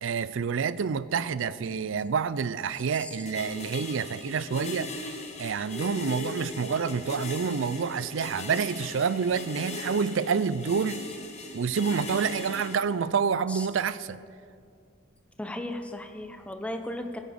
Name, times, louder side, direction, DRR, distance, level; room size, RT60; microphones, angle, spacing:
voice 1, 0.0-11.0 11.5-14.2, right 6 dB, 65° right, 16 dB, 0.4 m, -28 dB
sound 1, 3.3-12.8, left 2 dB, 35° left, 1.1 m, -39 dB
voice 2, 15.4-17.2, left 1 dB, 5° left, 6 dB, 0.7 m, -36 dB
16.0 x 8.6 x 5.2 m, 2.3 s
head